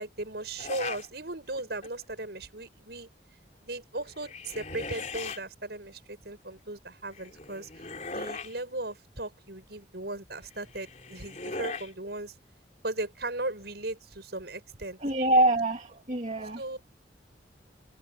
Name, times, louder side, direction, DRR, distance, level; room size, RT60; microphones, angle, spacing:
voice 1, 0.0-3.1 3.6-7.8 8.1-12.3 12.8-15.0 16.6-16.8, right 2 dB, 65° right, 6.2 m, -37 dB
sound 1, 0.6-1.1 1.6-2.0 4.1-5.4 7.1-8.6 10.6-11.9, left 4 dB, 40° left, 4.0 m, -39 dB
voice 2, 15.0-16.6, right 1 dB, 40° right, 2.3 m, -25 dB
head